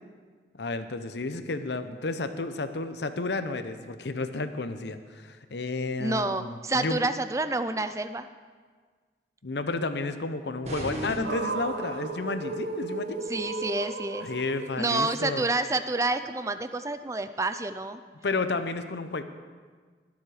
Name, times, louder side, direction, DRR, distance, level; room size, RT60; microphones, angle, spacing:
voice 1, 0.6-7.0 9.4-13.2 14.2-15.5 18.2-19.2, left 3 dB, 75° left, 10 dB, 0.8 m, -32 dB
voice 2, 6.0-8.3 13.3-14.3 14.8-18.0, right 2 dB, 15° right, 10 dB, 0.4 m, -28 dB
sound 1, 10.6-12.1, equal, 40° right, 1.8 m, -36 dB
sound 2, 11.2-15.5, right 3 dB, 65° right, 1.0 m, -35 dB
20.5 x 7.3 x 4.9 m, 1.5 s
head